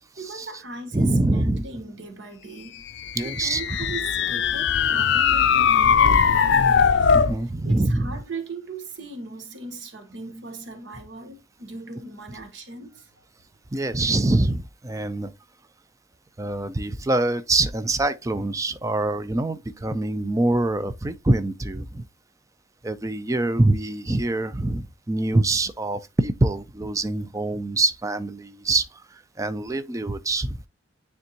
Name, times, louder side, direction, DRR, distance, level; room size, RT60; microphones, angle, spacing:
voice 1, 0.2-2.8 3.2-6.8 7.2-7.4 7.6-13.2, right 3 dB, 65° right, 1.2 m, -38 dB
voice 2, 0.9-1.6 3.1-3.6 7.1-8.1 13.7-15.3 16.4-22.1 22.8-30.6, right 2 dB, 15° right, 0.4 m, -24 dB
sound 1, 3.0-7.4, left 6 dB, 60° left, 0.4 m, -20 dB
9.4 x 3.5 x 2.9 m
head